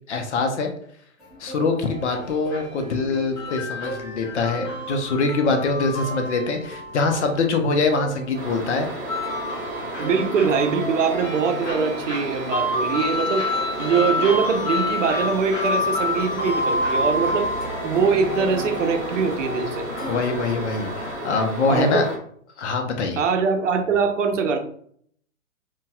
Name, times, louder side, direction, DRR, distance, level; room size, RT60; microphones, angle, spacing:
voice 1, 0.1-0.7 1.4-8.9 20.1-22.1 22.6-23.2, left 3 dB, 60° left, 5 dB, 0.7 m, -24 dB
Plucked string instrument, 1.2-20.1, right 1 dB, ahead, 0.4 m, -40 dB
sound 1, 1.8-21.2, left 2 dB, 35° left, 1.0 m, -29 dB
sound 2, 8.3-22.2, right 1 dB, 25° right, 1.0 m, -33 dB
voice 2, 10.0-13.5 13.8-17.5 17.8-19.9 21.7-22.1 23.2-24.6, right 5 dB, 65° right, 6 dB, 0.6 m, -22 dB
3.9 x 2.3 x 2.2 m, 0.63 s
hypercardioid pair, 125°, 40 cm